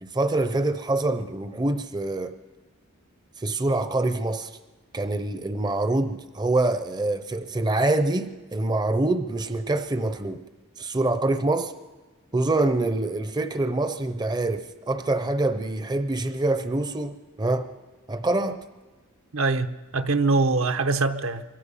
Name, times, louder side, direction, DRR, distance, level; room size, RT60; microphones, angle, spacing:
voice 1, 0.0-2.3 3.4-4.5 4.9-10.4 10.8-11.7 12.3-17.7 18.1-18.6, right 2 dB, 20° right, 0.6 m, -25 dB
voice 2, 19.3-21.4, right 3 dB, 65° right, 0.9 m, -23 dB
24.5 x 24.0 x 5.6 m
head